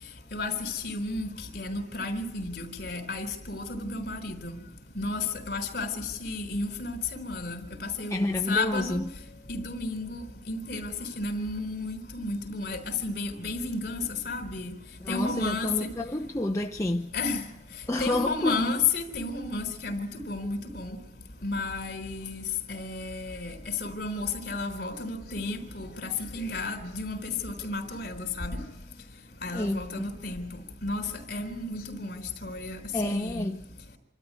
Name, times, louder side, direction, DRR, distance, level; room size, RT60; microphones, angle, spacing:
voice 1, 0.3-4.6 5.0-8.2 8.5-9.0 9.5-10.2 10.5-14.0 14.3-14.7 15.1-15.9 17.1-17.4 18.0-21.0 21.4-22.4 22.7-28.6 29.4-30.4 30.8-32.8 33.0-33.5, left 3 dB, 60° left, 3.7 m, -32 dB
voice 2, 8.1-9.0 15.0-17.1 17.9-18.7 29.5-30.1 32.9-33.6, left 1 dB, 15° left, 0.8 m, -29 dB
26.5 x 13.0 x 9.6 m
head